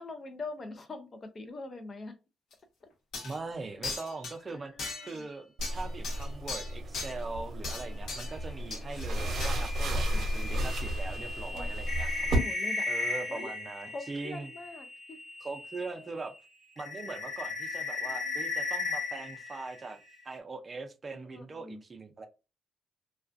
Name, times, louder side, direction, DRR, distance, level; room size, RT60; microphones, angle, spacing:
voice 1, 0.0-2.1 3.7-3.9 4.5-5.3 7.8-8.0 9.6-10.3 11.5-11.7 12.4-12.9 13.3-13.6 13.9-15.2 15.9-16.1 18.0-18.4 21.1-21.8, left 2 dB, 40° left, 7 dB, 0.5 m, -44 dB
sound 1, 2.5-2.6 3.1-3.4 3.8-4.3 4.8-5.2 5.6-7.1 7.6-8.4 8.7-9.1 9.4-9.5, left 3 dB, 70° left, 0.9 m, -38 dB
voice 2, 3.2-4.7 5.0-5.5 5.7-12.3 12.9-14.5 15.4-16.3 16.8-20.0 20.2-22.3, right 3 dB, 30° right, 7 dB, 0.5 m, -41 dB
sound 2, 5.6-12.4, right 1 dB, 60° right, 0.8 m, -33 dB
sound 3, 9.2-16.0 16.3-20.4, left 3 dB, 15° left, 1.1 m, -37 dB
2.3 x 2.3 x 2.5 m, 0.30 s
cardioid pair, 90°, 0 cm